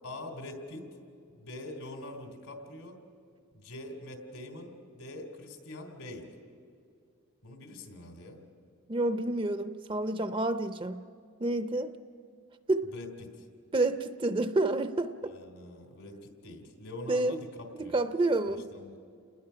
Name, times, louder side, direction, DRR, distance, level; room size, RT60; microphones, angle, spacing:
voice 1, 0.0-0.8 1.3-3.0 3.5-6.3 7.4-8.4 12.9-13.3 15.3-18.0 18.5-19.0, left 1 dB, 80° left, 4 dB, 3.3 m, -44 dB
voice 2, 8.9-11.0 11.4-12.0 12.7-12.9 13.7-15.3 17.1-17.4 17.7-18.7, right 2 dB, 25° right, 10 dB, 0.5 m, -29 dB
29.0 x 20.0 x 5.8 m, 2.4 s
head